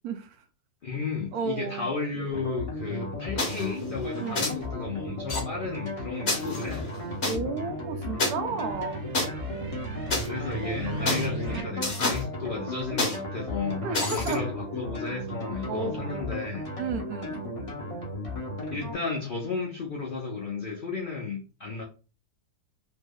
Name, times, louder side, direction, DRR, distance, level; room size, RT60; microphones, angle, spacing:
voice 1, 0.0-0.4 1.3-1.9 4.1-4.5 7.2-9.0 13.8-14.5 15.7-16.0 16.8-17.4, right 5 dB, 75° right, 1.0 m, -32 dB
voice 2, 0.8-6.9 10.2-16.6 18.7-21.8, left 4 dB, 80° left, 0.4 m, -33 dB
sound 1, 2.3-18.9, left 1 dB, 25° left, 0.8 m, -35 dB
sound 2, 3.4-3.7 4.3-4.5 5.3-5.4 6.3-7.4 8.2-8.3 9.1-9.2 10.1-10.3 11.1-11.3 11.8-12.2 13.0-13.2 13.9-14.3, left 2 dB, 45° left, 1.1 m, -28 dB
sound 3, 6.7-11.6, right 3 dB, 60° right, 0.8 m, -38 dB
3.2 x 2.0 x 3.5 m
omnidirectional pair, 1.7 m